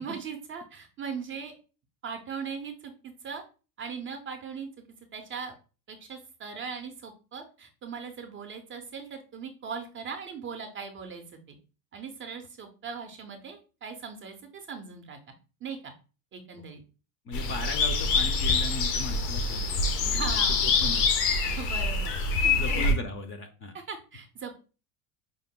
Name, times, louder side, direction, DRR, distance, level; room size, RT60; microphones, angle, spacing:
voice 1, 0.0-1.5 2.0-3.4 3.8-4.7 5.1-5.5 5.9-11.6 11.9-15.2 15.6-15.9 16.3-16.8 20.1-20.8 21.5-22.8 23.7-24.6, right 6 dB, 30° right, 5 dB, 0.4 m, -39 dB
sound 1, 17.3-22.9, left 3 dB, 85° left, 0.8 m, -25 dB
voice 2, 17.3-20.3 20.8-21.6 22.5-23.7, left 3 dB, 30° left, 7 dB, 0.4 m, -37 dB
4.8 x 2.0 x 3.5 m, 0.34 s
supercardioid pair, 135°, 46 cm